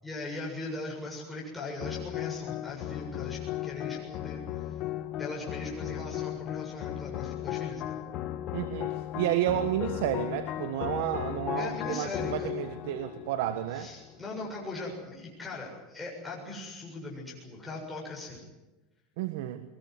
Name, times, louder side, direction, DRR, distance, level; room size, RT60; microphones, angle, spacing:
voice 1, 0.0-4.8 5.2-8.1 11.6-12.5 13.7-18.4, left 2 dB, 5° left, -4 dB, 7.3 m, -40 dB
sound 1, 1.8-14.3, left 13 dB, 50° left, 1.4 m, -36 dB
voice 2, 8.5-13.9 19.2-19.6, right 12 dB, 75° right, 10 dB, 1.5 m, -31 dB
22.5 x 21.0 x 9.7 m, 1.1 s
supercardioid pair, 130°, 0 cm